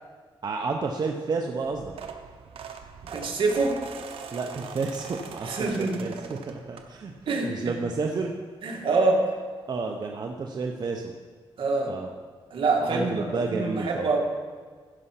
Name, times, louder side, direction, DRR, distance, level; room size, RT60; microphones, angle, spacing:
voice 1, 0.4-1.9 4.3-8.3 9.7-11.1 11.9-12.1 12.9-14.2, right 4 dB, 50° right, 2 dB, 0.8 m, -31 dB
sound 1, 1.6-7.3 7.7-8.0 9.2-9.3 9.5-9.7 10.0-10.1, right 6 dB, 90° right, 0.9 m, -42 dB
voice 2, 3.1-3.8 5.4-6.2 7.3-7.8 8.6-9.3 11.6-11.9 12.5-14.2, right 3 dB, 70° right, 0 dB, 1.9 m, -25 dB
15.0 x 5.7 x 5.8 m, 1.5 s
cardioid pair, 100°, 9 cm